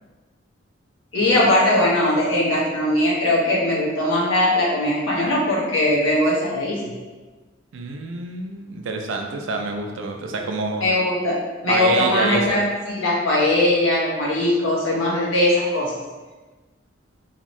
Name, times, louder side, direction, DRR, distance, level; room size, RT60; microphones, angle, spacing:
voice 1, 1.1-6.9 10.8-11.3 11.6-16.0, left 1 dB, 90° left, -5 dB, 1.0 m, -20 dB
voice 2, 7.7-10.9 11.7-12.6, right 3 dB, 75° right, 3 dB, 0.4 m, -27 dB
2.8 x 2.6 x 3.0 m, 1.3 s
head